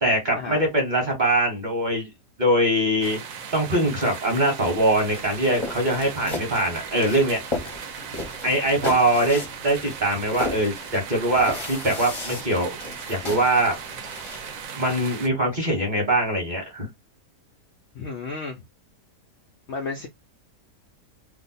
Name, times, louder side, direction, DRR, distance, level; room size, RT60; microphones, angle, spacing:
voice 1, 0.0-2.1 2.4-3.2 3.5-7.4 8.4-12.8 13.1-13.8 14.8-16.9, right 1 dB, 30° right, 1.0 m, -22 dB
sound 1, 3.0-15.3, right 7 dB, 65° right, 0.9 m, -38 dB
sound 2, 4.6-14.6, left 2 dB, 30° left, 0.6 m, -36 dB
voice 2, 17.9-18.6 19.7-20.1, left 4 dB, 85° left, 0.6 m, -32 dB
2.8 x 2.1 x 4.0 m
omnidirectional pair, 1.8 m